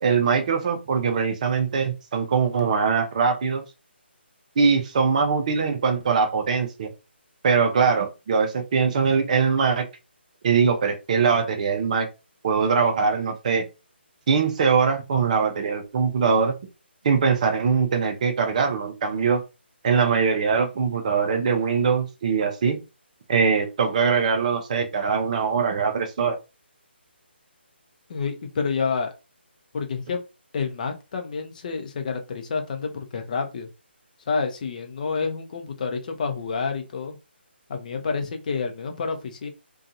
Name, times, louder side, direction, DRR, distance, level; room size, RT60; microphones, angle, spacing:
voice 1, 0.0-3.6 4.6-6.9 7.4-9.9 10.4-12.1 12.4-13.6 14.3-16.5 17.0-19.4 19.8-22.8 23.3-26.4, right 5 dB, 40° right, 6 dB, 0.6 m, -22 dB
voice 2, 28.1-29.1 29.7-30.2 30.5-33.7 34.3-37.2 37.7-39.5, left 5 dB, 40° left, 4 dB, 0.6 m, -28 dB
2.6 x 2.3 x 2.6 m, 0.27 s
figure-of-eight pair, 150°, 6 cm